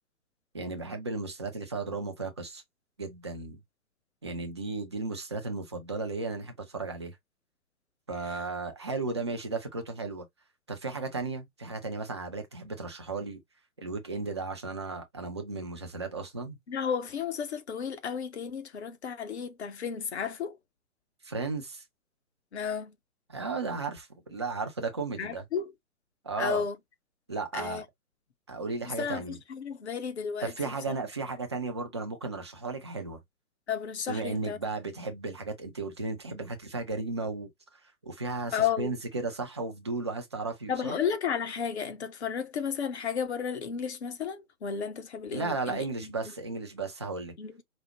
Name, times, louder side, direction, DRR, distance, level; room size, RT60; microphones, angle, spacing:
voice 1, 0.5-2.6 3.0-3.6 4.2-7.2 8.1-10.2 10.7-13.4 13.8-16.6 21.2-21.8 23.3-25.4 26.2-26.6 27.3-27.8 28.5-29.4 30.4-33.2 34.1-37.5 38.0-41.0 45.3-47.3, right 3 dB, 20° right, 0.4 m, -35 dB
voice 2, 16.7-20.6 22.5-22.9 25.2-25.7 26.4-26.7 27.5-27.8 29.0-30.5 33.7-34.6 38.5-38.9 40.7-45.8 47.4-47.6, left 7 dB, 50° left, 0.8 m, -33 dB
5.0 x 2.1 x 2.8 m
figure-of-eight pair, 130°, 43 cm